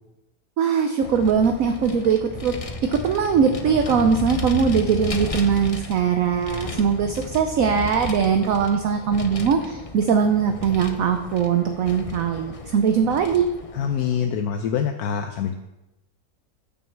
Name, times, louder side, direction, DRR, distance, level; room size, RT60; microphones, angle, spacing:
voice 1, 0.6-2.5 2.8-13.5, right 6 dB, 65° right, 6 dB, 1.0 m, -21 dB
Vehicle, 1.0-14.2, left 2 dB, 50° left, 0.4 m, -34 dB
voice 2, 13.7-15.5, left 8 dB, 70° left, 6 dB, 1.1 m, -25 dB
9.2 x 6.3 x 7.1 m, 0.98 s
omnidirectional pair, 1.8 m